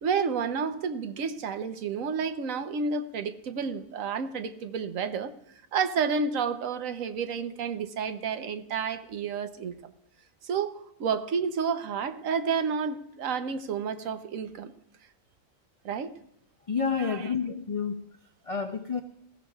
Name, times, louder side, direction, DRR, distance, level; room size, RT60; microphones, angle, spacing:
voice 1, 0.0-5.3 5.7-9.7 10.4-14.7 15.8-16.1 17.0-17.3, right 6 dB, 80° right, 1.2 m, -30 dB
voice 2, 16.7-18.1 18.4-19.0, left 6 dB, 60° left, 0.3 m, -29 dB
19.5 x 15.0 x 2.3 m
omnidirectional pair, 1.4 m